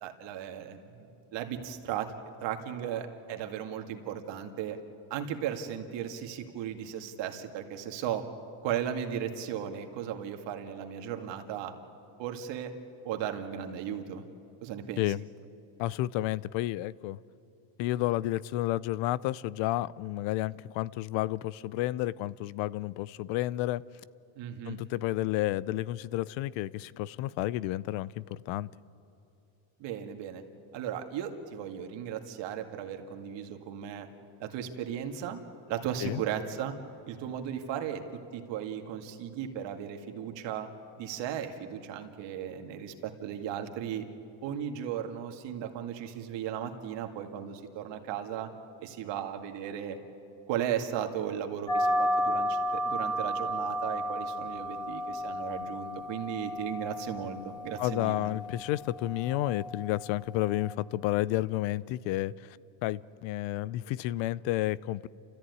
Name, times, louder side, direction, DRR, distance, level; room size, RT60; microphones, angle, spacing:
voice 1, 0.0-2.1 2.4-4.8 5.1-8.2 8.6-11.7 12.2-12.7 13.0-14.2 14.6-15.1 24.4-24.8 29.8-30.4 30.7-34.1 34.4-35.4 35.7-36.7 37.1-38.0 38.3-40.7 41.0-44.0 44.4-48.5 48.8-50.0 50.5-58.3, right 9 dB, 65° right, 5 dB, 2.2 m, -36 dB
voice 2, 15.8-17.2 17.8-23.8 24.7-28.7 36.0-36.2 57.8-65.1, left 15 dB, 70° left, 20 dB, 0.6 m, -31 dB
sound 1, 51.7-60.7, equal, 10° left, 1.6 m, -33 dB
29.5 x 14.0 x 9.5 m, 2.8 s
cardioid pair, 140°, 47 cm